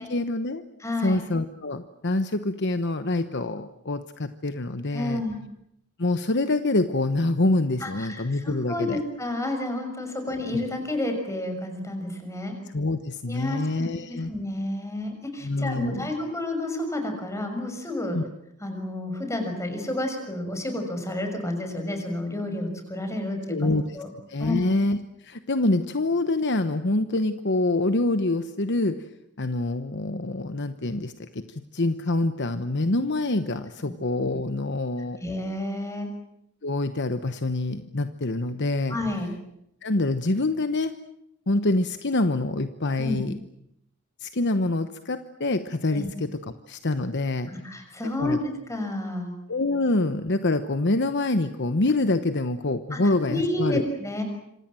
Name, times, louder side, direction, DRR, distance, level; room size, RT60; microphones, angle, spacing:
voice 1, 0.0-0.6 1.0-5.2 6.0-9.0 10.2-10.3 12.7-14.3 15.4-16.1 18.1-18.2 23.5-24.0 24.3-25.0 25.2-29.0 29.4-35.2 36.6-39.0 39.8-40.9 41.5-43.3 44.2-47.5 48.2-48.4 49.5-53.8, left 2 dB, 50° left, 10 dB, 1.1 m, -26 dB
voice 2, 0.8-1.2 4.9-5.4 7.8-12.5 13.3-18.2 18.6-24.1 24.4-24.6 33.8-33.9 35.2-36.1 38.9-39.3 43.0-43.2 45.9-46.1 47.5-49.3 52.9-53.0 53.3-54.2, left 1 dB, 15° left, 5 dB, 6.3 m, -30 dB
27.0 x 25.5 x 7.7 m, 0.79 s
head